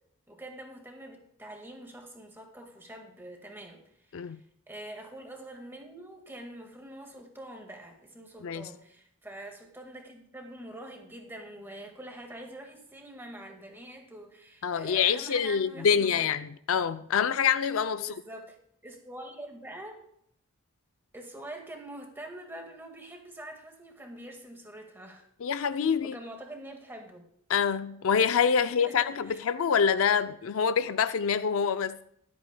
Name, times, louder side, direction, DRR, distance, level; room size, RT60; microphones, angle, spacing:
voice 1, 0.3-4.4 4.7-16.3 18.0-18.6 18.8-20.0 21.1-25.3 26.0-27.3 28.6-29.4, right 1 dB, 10° right, 1.7 m, -45 dB
voice 2, 14.6-18.1 25.4-26.1 27.5-32.0, left 7 dB, 65° left, 0.4 m, -26 dB
23.0 x 8.3 x 2.2 m
head